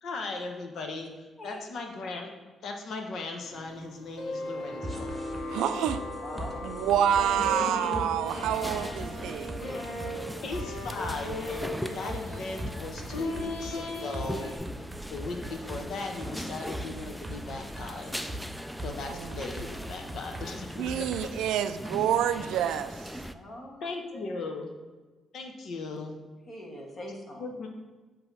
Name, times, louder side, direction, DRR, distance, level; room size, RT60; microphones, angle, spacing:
voice 1, 0.0-2.3 2.6-5.2 7.6-8.0 10.4-14.5 15.1-18.3 18.8-21.3 23.8-24.7 25.3-26.2 27.4-27.7, left 3 dB, 65° left, 3 dB, 0.9 m, -38 dB
sound 1, 3.4-14.6, left 1 dB, 90° left, 1.4 m, -37 dB
sound 2, 4.8-21.2, right 1 dB, 15° right, 1.0 m, -41 dB
voice 2, 5.5-6.0 6.6-9.6 19.1-19.4 20.8-23.1, right 9 dB, 90° right, 11 dB, 0.3 m, -28 dB
voice 3, 6.2-7.0 19.3-19.5 22.1-22.2 23.3-24.2 26.5-27.4, left 1 dB, 45° left, 0 dB, 1.5 m, -43 dB
sound 3, 8.3-23.3, equal, ahead, 0.3 m, -40 dB
7.8 x 2.9 x 5.3 m, 1.3 s
cardioid pair, 90°, 0 cm